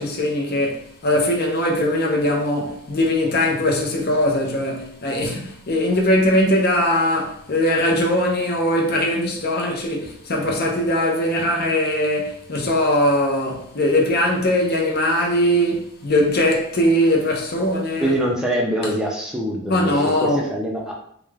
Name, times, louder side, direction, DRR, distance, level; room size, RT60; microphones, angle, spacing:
voice 1, 0.0-18.1 19.7-20.5, left 1 dB, 45° left, 0.5 m, -20 dB
voice 2, 18.0-20.9, equal, 5° right, 0.4 m, -24 dB
2.4 x 2.2 x 3.2 m
head